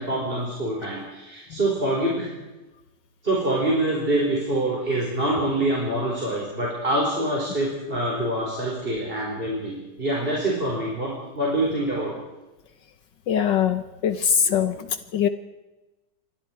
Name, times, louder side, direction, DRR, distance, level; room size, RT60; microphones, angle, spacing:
voice 1, 0.0-2.3 3.2-12.1, right 1 dB, 30° right, -3 dB, 5.0 m, -25 dB
voice 2, 13.3-15.3, left 8 dB, 70° left, 10 dB, 1.7 m, -22 dB
28.5 x 24.0 x 4.7 m, 1.1 s
omnidirectional pair, 2.1 m